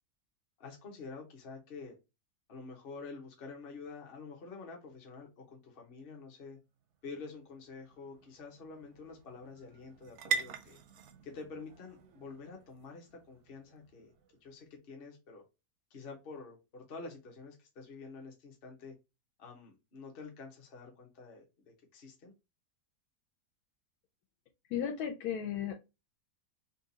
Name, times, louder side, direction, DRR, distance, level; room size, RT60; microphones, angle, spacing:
voice 1, 0.6-2.0 2.5-6.6 7.0-10.8 11.2-14.1 14.4-15.4 15.9-18.9 19.4-22.3, left 4 dB, 45° left, 0.9 m, -48 dB
sound 1, 6.7-14.5, right 6 dB, 65° right, 0.7 m, -43 dB
voice 2, 24.7-25.7, left 9 dB, 85° left, 1.2 m, -34 dB
4.0 x 2.4 x 2.6 m
omnidirectional pair, 1.6 m